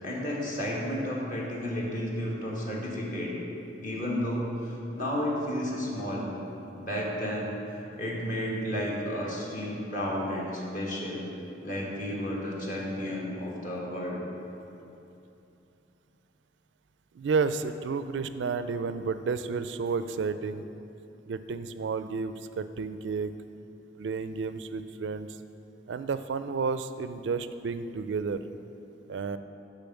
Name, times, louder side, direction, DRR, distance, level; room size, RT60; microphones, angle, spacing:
voice 1, 0.0-3.4 3.8-6.3 6.7-7.5 7.9-11.3 11.6-14.2, equal, 50° left, -4 dB, 1.7 m, -32 dB
voice 2, 17.1-20.6 21.3-23.3 24.0-25.3 25.9-28.4 29.1-29.4, right 5 dB, 80° right, 11 dB, 0.4 m, -31 dB
6.9 x 5.6 x 7.1 m, 2.8 s
head